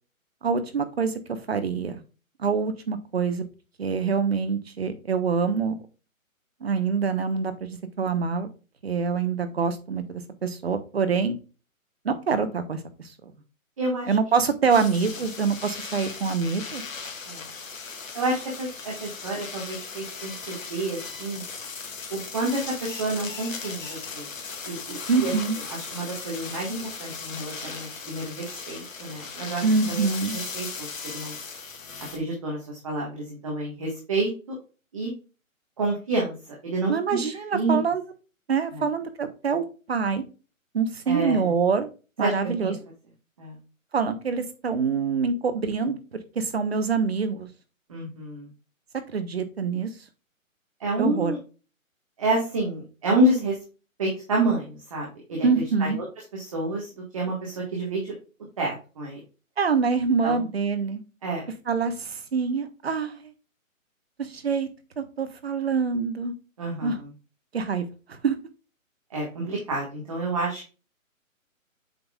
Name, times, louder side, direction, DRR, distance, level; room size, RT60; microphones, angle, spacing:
voice 1, 0.4-2.0 2.4-3.4 3.8-5.7 6.6-8.5 8.8-11.3 12.0-12.8 14.1-16.8 25.1-25.6 29.6-30.4 36.9-38.0 38.5-40.2 40.7-41.9 42.2-42.8 43.9-46.0 46.3-47.5 49.1-49.9 51.0-51.3 55.4-56.0 59.6-61.0 61.7-63.3 64.2-64.7 65.0-66.3 66.8-67.0 67.5-67.8 68.1-68.4, right 5 dB, 45° right, 9 dB, 1.1 m, -25 dB
voice 2, 13.8-14.1 17.3-17.4 18.1-21.4 22.1-24.3 24.6-25.0 25.2-25.3 25.7-29.6 29.9-30.0 30.5-30.7 31.1-31.4 32.1-34.5 34.9-35.1 35.8-36.3 36.6-37.2 37.5-37.8 38.7-38.8 41.1-41.5 42.2-42.7 43.4-43.6 47.9-48.5 50.8-51.4 52.2-53.5 54.0-55.5 55.8-56.0 56.3-58.1 58.6-59.2 60.2-60.4 61.2-61.5 66.6-66.9 69.1-70.7, right 2 dB, 25° right, -2 dB, 1.4 m, -28 dB
sound 1, 14.7-32.2, left 5 dB, 65° left, 2.0 m, -37 dB
7.8 x 5.4 x 2.3 m, 0.33 s
hypercardioid pair, 175°, 41 cm